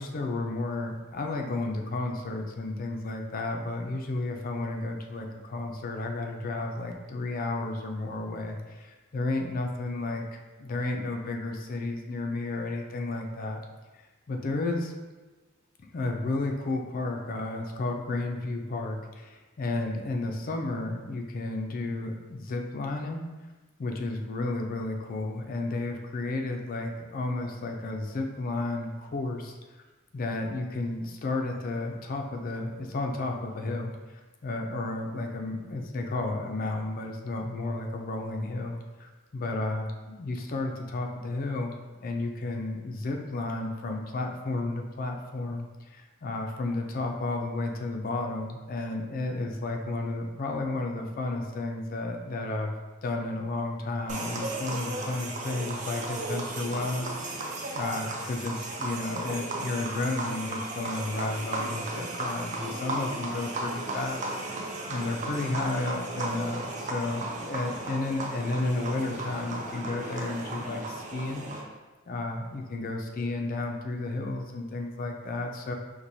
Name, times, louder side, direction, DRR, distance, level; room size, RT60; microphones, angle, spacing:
voice 1, 0.0-13.6 14.3-14.9 15.8-23.2 23.8-29.6 30.1-33.9 34.4-52.7 53.0-71.4 72.1-75.7, left 2 dB, 45° left, 2 dB, 0.4 m, -32 dB
sound 1, 54.1-71.6, right 2 dB, 40° right, 0.4 m, -35 dB
4.5 x 2.2 x 2.7 m, 1.2 s
head